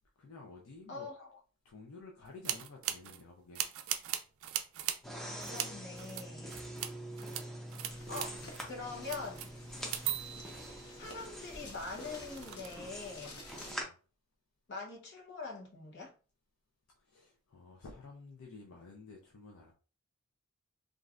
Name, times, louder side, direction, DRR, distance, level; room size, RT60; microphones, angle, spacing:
voice 1, 0.2-1.1 1.6-3.6 13.7-13.9 17.1-19.7, left 3 dB, 70° left, 0.5 m, -52 dB
voice 2, 0.9-1.4 5.3-6.5 8.1-9.5 10.9-13.4 14.7-16.1, left 3 dB, 50° left, 1.0 m, -44 dB
sound 1, 2.5-3.2 3.6-5.0 5.4-5.7 6.0-6.9 7.2-7.4 7.7-8.7 9.0-11.4 12.0-12.9, right 11 dB, 65° right, 0.3 m, -39 dB
sound 2, 5.0-13.8, right 1 dB, ahead, 0.5 m, -45 dB
sound 3, 7.9-13.7, left 2 dB, 85° left, 0.9 m, -52 dB
3.1 x 2.5 x 2.4 m
head